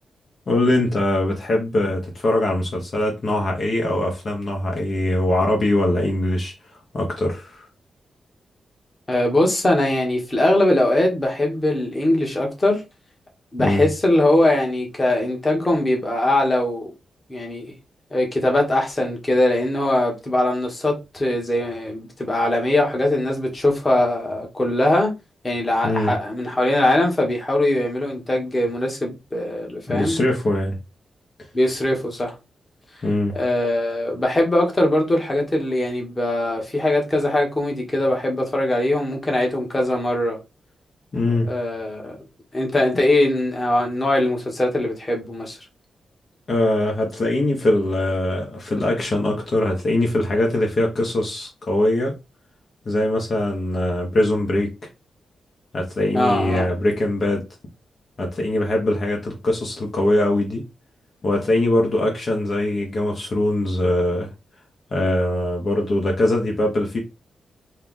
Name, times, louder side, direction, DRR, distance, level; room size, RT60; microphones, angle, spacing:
voice 1, 0.5-6.5 6.9-7.7 13.6-13.9 25.8-26.1 29.9-30.8 33.0-33.3 41.1-41.5 46.5-52.2 52.8-54.7 55.7-57.4 58.2-60.6 61.2-64.3 64.9-67.0, left 1 dB, 45° left, 1.1 m, -22 dB
voice 2, 9.1-12.8 13.5-16.9 17.3-17.6 18.1-25.1 25.4-30.2 31.5-32.3 33.3-40.4 41.4-42.2 42.5-45.6 56.1-56.7, left 1 dB, 20° left, 1.3 m, -21 dB
4.4 x 2.4 x 3.8 m
wide cardioid pair, 130°, 0 cm